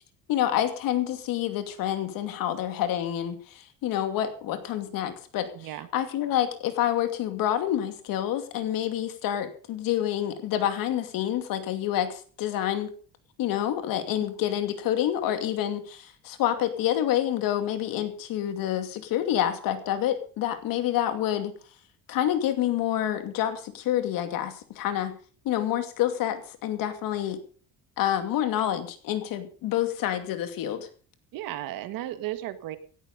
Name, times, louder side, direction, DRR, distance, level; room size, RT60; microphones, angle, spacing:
voice 1, 0.3-12.9 13.4-21.5 22.1-25.2 25.4-27.4 28.0-30.9, left 11 dB, 75° left, 9 dB, 2.6 m, -28 dB
voice 2, 5.5-5.9 31.3-32.8, right 14 dB, 75° right, 10 dB, 1.9 m, -34 dB
17.5 x 12.0 x 5.3 m, 0.41 s
cardioid pair, 165°, 35 cm